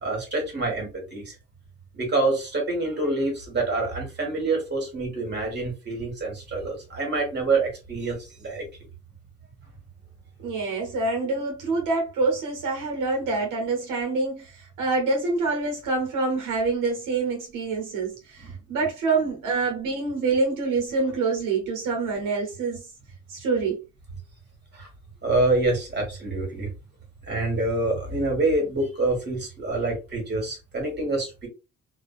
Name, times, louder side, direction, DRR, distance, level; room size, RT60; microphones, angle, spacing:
voice 1, 0.0-1.3 1.9-8.6 18.4-18.9 24.7-24.9 25.2-26.7 27.3-31.5, right 2 dB, 35° right, 1.3 m, -26 dB
voice 2, 10.4-22.8 23.3-23.8, right 3 dB, 90° right, 0.9 m, -26 dB
2.5 x 2.3 x 2.3 m
cardioid pair, 90°, 30 cm